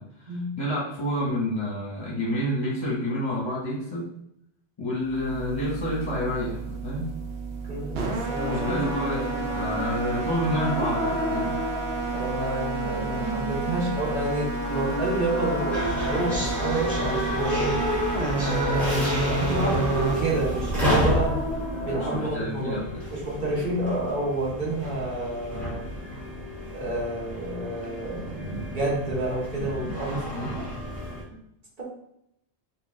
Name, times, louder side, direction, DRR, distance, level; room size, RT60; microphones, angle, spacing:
voice 1, 0.0-4.1 4.8-7.0 8.5-11.6 22.0-22.9 30.3-30.7, left 1 dB, 30° left, -5 dB, 0.9 m, -29 dB
sound 1, 5.0-22.3, right 3 dB, 80° right, 0.9 m, -30 dB
voice 2, 7.7-9.4 12.1-17.8 18.7-19.8 20.2-21.4 21.8-22.8 23.1-25.8 26.7-30.7 31.8-31.9, right 2 dB, 45° right, -4 dB, 1.2 m, -29 dB
sound 2, 8.4-22.3, equal, 15° right, 0.5 m, -32 dB
sound 3, 15.7-31.2, equal, ahead, 1.4 m, -32 dB
3.9 x 2.3 x 3.6 m, 0.76 s
omnidirectional pair, 1.1 m